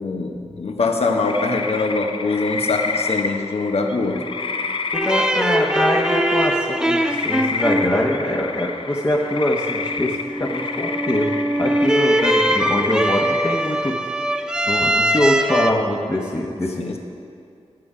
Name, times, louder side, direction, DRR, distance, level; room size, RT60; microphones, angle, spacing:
voice 1, 0.0-4.2 16.8-17.0, left 3 dB, 65° left, 3 dB, 1.0 m, -23 dB
sound 1, 1.2-13.9, left 4 dB, 50° left, 0.4 m, -29 dB
voice 2, 4.9-13.9 14.7-17.0, left 1 dB, 25° left, -3 dB, 0.9 m, -23 dB
sound 2, 4.9-15.7, right 1 dB, 5° right, 0.4 m, -22 dB
11.5 x 7.8 x 4.9 m, 2.4 s
wide cardioid pair, 85°, 11 cm